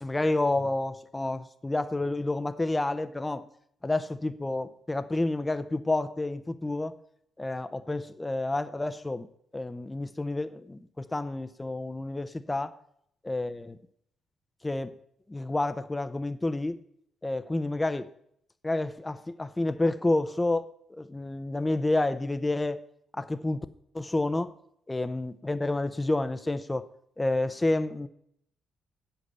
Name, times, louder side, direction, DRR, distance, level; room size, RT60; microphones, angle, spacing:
voice 1, 0.0-3.4 3.8-7.0 7.4-9.3 9.5-12.8 13.2-13.8 14.6-14.9 15.3-16.8 17.2-18.1 18.6-22.8 23.1-23.6 23.9-24.5 24.9-26.9 27.2-28.1, left 2 dB, 15° left, 12 dB, 0.7 m, -29 dB
8.1 x 7.9 x 5.6 m, 0.69 s
cardioid pair, 90°, 0 cm